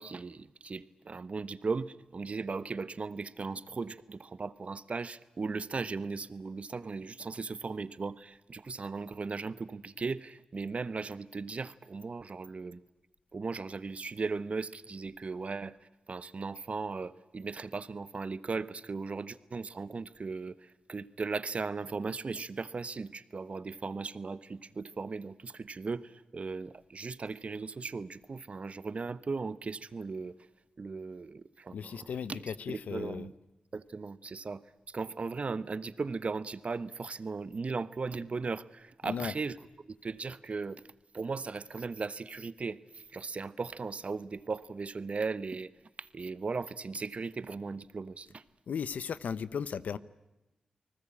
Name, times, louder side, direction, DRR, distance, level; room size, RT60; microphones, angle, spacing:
voice 1, 0.0-12.8 13.3-15.8 16.1-30.3 30.8-32.4 32.7-33.3 33.7-39.5 39.8-40.8 41.1-45.7 46.0-48.4, right 4 dB, 55° right, 1.1 m, -37 dB
voice 2, 31.7-33.3 39.0-39.4 48.7-50.0, left 7 dB, 85° left, 0.9 m, -36 dB
30.0 x 19.5 x 8.7 m
cardioid pair, 40°, 3 cm